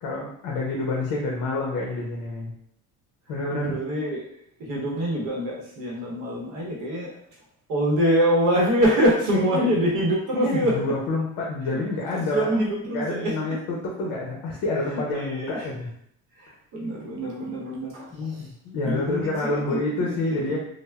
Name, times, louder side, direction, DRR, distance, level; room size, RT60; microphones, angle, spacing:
voice 1, 0.0-2.5 3.3-3.8 9.3-9.7 10.3-12.5 12.9-15.9 18.1-20.6, left 2 dB, 60° left, -2 dB, 0.6 m, -28 dB
voice 2, 3.5-4.3 4.6-7.1 7.7-10.7 12.1-13.3 14.9-15.7 16.4-18.5 18.8-20.4, equal, 65° right, -3 dB, 0.8 m, -25 dB
3.2 x 2.0 x 2.2 m, 0.71 s
cardioid pair, 150°, 34 cm